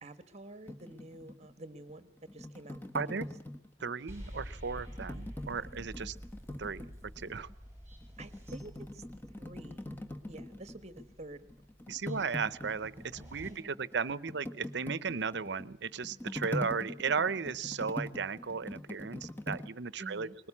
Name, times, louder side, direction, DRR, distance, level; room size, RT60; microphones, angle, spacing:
voice 1, 0.0-3.3 8.2-9.0 9.3-9.9 10.3-11.5 20.0-20.4, right 2 dB, 35° right, 11 dB, 1.3 m, -49 dB
sound 1, 0.7-4.1 4.8-7.5 7.9-11.2 11.4-19.7, left 1 dB, 10° left, 1.3 m, -43 dB
voice 2, 2.9-3.3 3.8-6.2 6.6-6.9 7.2-7.5 11.9-20.3, right 5 dB, 65° right, 17 dB, 0.7 m, -35 dB
sound 2, 4.1-13.5, equal, 15° right, 6.8 m, -49 dB
21.0 x 18.5 x 8.5 m, 0.81 s
head